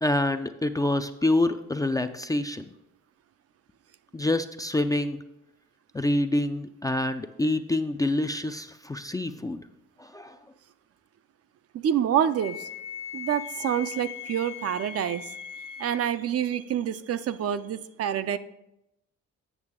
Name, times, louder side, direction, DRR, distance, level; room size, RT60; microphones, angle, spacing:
voice 1, 0.0-2.7 4.1-5.2 5.9-9.6 10.0-10.4, left 1 dB, 10° left, 8 dB, 0.3 m, -26 dB
voice 2, 11.8-12.7 13.1-18.4, right 9 dB, 55° right, 12 dB, 0.5 m, -27 dB
Wind instrument woodwind instrument, 12.4-16.0, left 10 dB, 60° left, 0.7 m, -39 dB
8.2 x 6.6 x 3.6 m, 0.86 s
cardioid pair, 90°, 30 cm